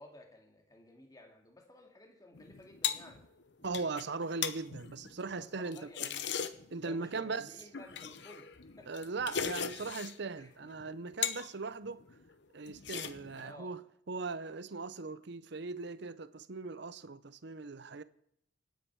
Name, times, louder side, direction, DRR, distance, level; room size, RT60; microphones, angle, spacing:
voice 1, 0.0-3.2 5.4-6.3 6.8-9.2 10.4-10.5 13.4-13.7, left 1 dB, 20° left, 2.3 m, -55 dB
sound 1, 2.3-6.8 7.6-10.2 10.6-11.5 11.8-12.3 12.7-13.5, left 8 dB, 60° left, 0.9 m, -39 dB
voice 2, 3.6-5.8 6.7-7.5 8.9-12.0 12.5-18.0, right 4 dB, 60° right, 0.7 m, -39 dB
25.5 x 9.4 x 4.7 m
head